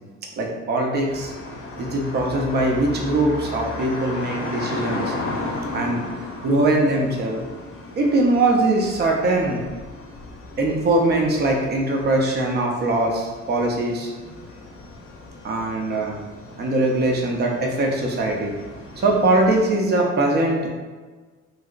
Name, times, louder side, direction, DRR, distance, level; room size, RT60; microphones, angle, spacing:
voice 1, 0.4-1.3 1.8-5.1 5.7-6.0 6.4-7.4 8.0-9.6 10.6-14.1 15.4-16.2 16.6-18.5 19.0-20.7, right 2 dB, 35° right, 1 dB, 0.5 m, -21 dB
sound 1, 1.1-19.7, left 2 dB, 45° left, 0.7 m, -35 dB
3.2 x 2.9 x 2.4 m, 1.4 s
cardioid pair, 165°, 29 cm